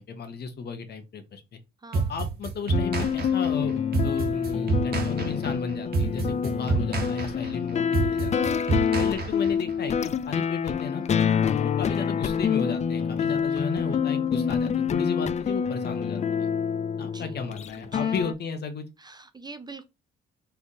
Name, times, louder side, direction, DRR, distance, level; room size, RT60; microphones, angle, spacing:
voice 1, 0.0-1.6 1.9-8.4 9.0-11.0 11.5-16.5 17.0-18.8, left 5 dB, 55° left, 1.1 m, -34 dB
sound 1, 1.9-9.7, right 4 dB, 50° right, 1.2 m, -28 dB
sound 2, 2.7-18.3, left 7 dB, 35° left, 0.4 m, -27 dB
voice 2, 19.0-19.9, right 3 dB, 20° right, 0.5 m, -43 dB
4.1 x 3.5 x 2.9 m
cardioid pair, 90°, 20 cm